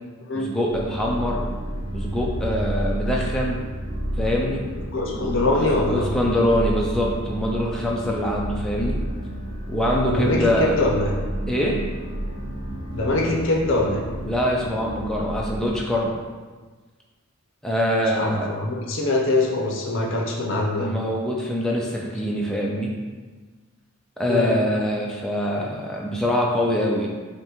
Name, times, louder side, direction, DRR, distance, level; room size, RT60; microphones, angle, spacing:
voice 1, 0.3-1.4 1.9-3.6 4.2-4.6 5.1-9.0 9.7-10.8 11.5-11.8 14.2-16.1 17.6-18.5 20.8-22.9 24.2-27.1, equal, 5° left, -3 dB, 0.3 m, -24 dB
sound 1, 0.7-15.7, equal, 25° right, 0.7 m, -30 dB
voice 2, 4.9-6.1 10.1-11.2 12.9-14.0 18.2-20.9 24.3-24.6, left 2 dB, 55° left, -1 dB, 0.6 m, -23 dB
5.4 x 2.2 x 3.0 m, 1.4 s
head